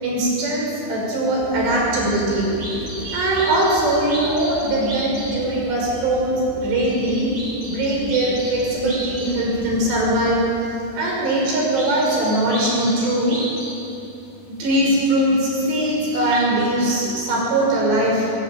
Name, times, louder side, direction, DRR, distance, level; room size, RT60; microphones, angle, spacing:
voice 1, 0.0-2.5 3.0-7.3 7.7-10.4 10.9-13.4 14.4-18.3, right 1 dB, 80° right, -2 dB, 7.9 m, -21 dB
sound 1, 1.4-10.5, equal, 10° left, 4.8 m, -38 dB
sound 2, 1.6-1.7 2.1-5.4 6.7-9.5 9.8-10.6 10.9-13.9 14.9-15.0 15.7-16.4, right 1 dB, 35° right, 5.8 m, -34 dB
27.0 x 16.0 x 9.5 m, 2.8 s
omnidirectional pair, 4.8 m